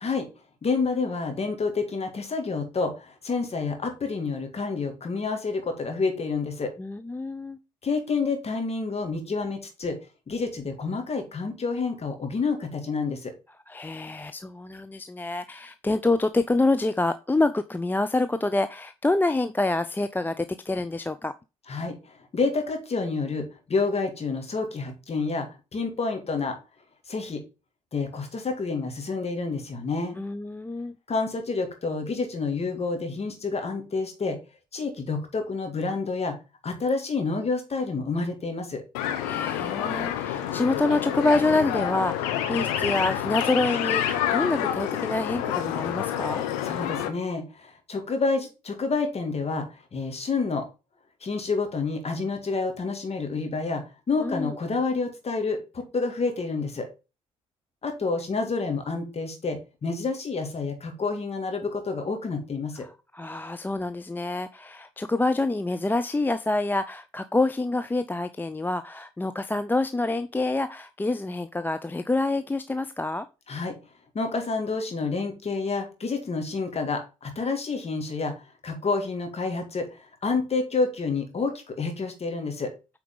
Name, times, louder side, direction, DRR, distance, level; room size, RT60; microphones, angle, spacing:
voice 1, 0.6-6.7 7.8-10.0 10.3-13.3 21.7-26.6 27.1-27.4 27.9-30.2 31.1-34.4 34.7-36.4 36.6-38.8 46.6-50.7 51.2-56.9 57.8-62.9 73.5-73.8 74.1-78.3 78.6-82.7, left 4 dB, 35° left, 5 dB, 2.5 m, -29 dB
voice 2, 6.8-7.6 13.7-21.3 30.2-31.0 39.2-46.4 54.2-54.5 62.8-73.3, left 2 dB, 10° left, 10 dB, 0.5 m, -27 dB
sound 1, 38.9-47.1, left 10 dB, 70° left, 0.9 m, -28 dB
8.4 x 4.6 x 3.9 m, 0.30 s
figure-of-eight pair, 45°, 18 cm